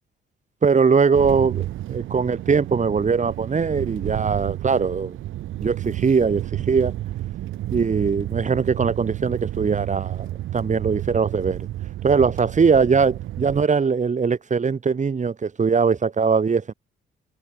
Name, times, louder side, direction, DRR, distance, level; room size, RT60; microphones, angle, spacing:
voice 1, 0.6-5.2 5.6-6.9 7.7-11.7 12.0-16.7, right 5 dB, 35° right, 6.6 m, -21 dB
sound 1, 1.1-13.7, right 14 dB, 85° right, 2.3 m, -31 dB
cardioid pair, 90°, 20 cm